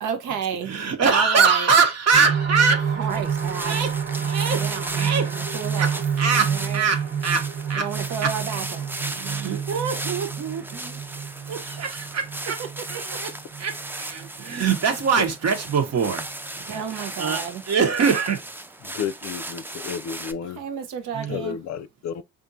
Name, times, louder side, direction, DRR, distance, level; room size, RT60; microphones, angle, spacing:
voice 1, 0.0-0.8 1.1-1.7 2.9-3.8 4.2-6.0 6.5-6.8 7.7-8.9 11.4-11.6 16.7-17.6 20.6-21.6, right 7 dB, 85° right, 0.9 m, -31 dB
voice 2, 0.6-3.0 3.7-3.9 4.2-4.7 4.9-5.3 5.8-7.9 8.2-8.3 9.0-11.0 11.5-12.6 12.9-13.3 13.6-16.3 16.7-18.4 21.1-21.4, right 5 dB, 60° right, 1.0 m, -23 dB
sound 1, 2.1-15.6 16.1-16.2 16.5-16.6, right 7 dB, 40° right, 1.0 m, -29 dB
sound 2, 3.1-20.3, right 1 dB, 5° right, 0.4 m, -36 dB
voice 3, 18.8-20.6 21.3-22.2, left 7 dB, 65° left, 0.5 m, -32 dB
3.6 x 2.6 x 2.6 m
cardioid pair, 90°, 30 cm